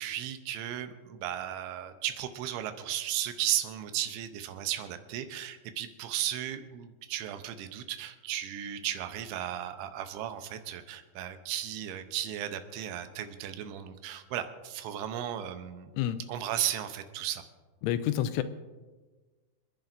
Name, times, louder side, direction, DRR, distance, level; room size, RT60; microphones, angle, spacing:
voice 1, 0.0-15.9 16.3-17.4, right 11 dB, 80° right, 9 dB, 3.1 m, -35 dB
voice 2, 17.8-18.4, left 12 dB, 85° left, 12 dB, 3.1 m, -28 dB
28.5 x 10.5 x 2.6 m, 1.3 s
omnidirectional pair, 5.5 m